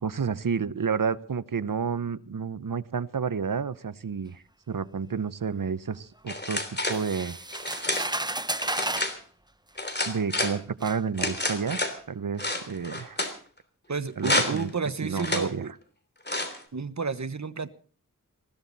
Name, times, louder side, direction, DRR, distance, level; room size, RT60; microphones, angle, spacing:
voice 1, 0.0-6.6 6.9-7.4 10.1-11.8 12.1-13.2 14.2-14.7 15.0-15.7, right 6 dB, 85° right, 16 dB, 0.8 m, -30 dB
sound 1, 6.3-7.0 7.5-8.1 8.6-9.2 9.8-10.6 11.2-12.0 12.4-13.3 14.2-14.7 15.2-15.5 16.3-16.6, left 1 dB, 30° left, 3.2 m, -29 dB
sound 2, 6.9-9.2 10.1-10.2 10.8-11.0, right 1 dB, 15° right, 0.9 m, -32 dB
voice 2, 13.9-15.7 16.7-17.7, right 5 dB, 60° right, 13 dB, 1.2 m, -31 dB
20.5 x 16.0 x 4.1 m, 0.40 s
wide cardioid pair, 60°, 32 cm